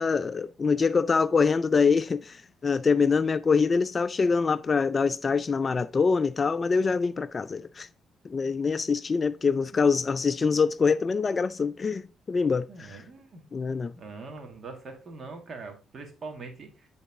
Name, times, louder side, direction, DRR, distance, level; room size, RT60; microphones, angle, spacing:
voice 1, 0.0-7.9 8.2-13.0 13.5-13.9, left 5 dB, 35° left, 0.3 m, -25 dB
voice 2, 12.7-13.4 14.0-16.9, right 3 dB, 45° right, 2.1 m, -42 dB
9.5 x 4.0 x 3.7 m
cardioid pair, 90°, 0 cm